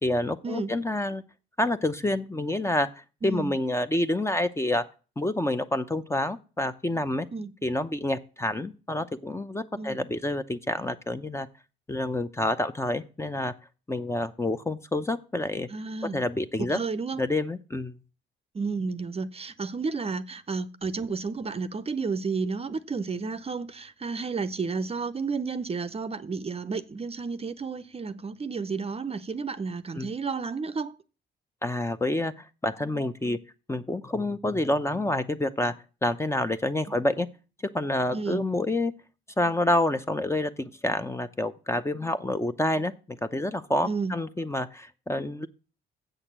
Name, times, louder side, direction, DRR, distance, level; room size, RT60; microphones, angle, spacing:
voice 1, 0.0-1.2 1.6-2.9 3.2-4.9 5.2-7.3 7.6-11.5 11.9-13.5 13.9-15.7 16.1-16.8 17.2-18.0 29.9-30.1 31.6-32.3 32.6-33.4 33.7-35.7 36.0-37.3 37.7-38.9 39.4-42.9 43.2-45.5, left 1 dB, 15° left, 0.7 m, -28 dB
voice 2, 15.7-16.2 16.6-17.2 18.5-30.9 36.9-37.0 38.1-38.4 43.9-44.1, right 4 dB, 30° right, 0.7 m, -32 dB
8.0 x 6.5 x 7.3 m
cardioid pair, 90°, 20 cm